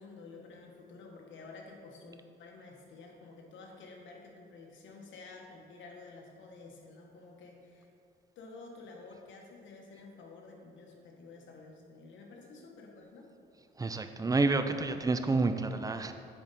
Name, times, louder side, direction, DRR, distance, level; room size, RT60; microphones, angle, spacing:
voice 1, 0.0-7.9 8.3-13.3, left 3 dB, 70° left, 1 dB, 1.2 m, -51 dB
voice 2, 13.8-16.1, right 3 dB, 20° right, 8 dB, 0.4 m, -29 dB
7.4 x 5.0 x 4.2 m, 2.5 s
cardioid pair, 90°, 20 cm